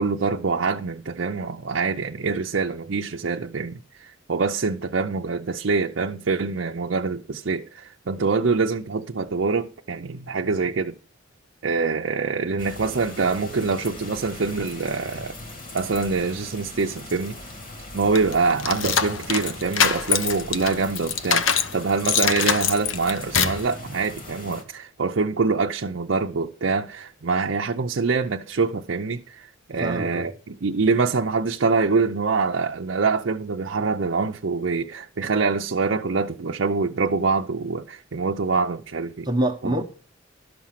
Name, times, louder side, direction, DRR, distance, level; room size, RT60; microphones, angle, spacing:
voice 1, 0.0-11.0 11.6-15.4 15.7-17.4 17.9-39.3 39.6-39.7, right 4 dB, 65° right, 0.6 m, -25 dB
sound 1, 12.6-24.6, left 1 dB, 45° left, 2.4 m, -40 dB
sound 2, 18.2-21.7 22.1-23.7, left 7 dB, 80° left, 0.8 m, -23 dB
voice 2, 29.7-30.3 39.2-39.8, right 1 dB, 20° right, 0.9 m, -25 dB
12.0 x 6.1 x 5.8 m
head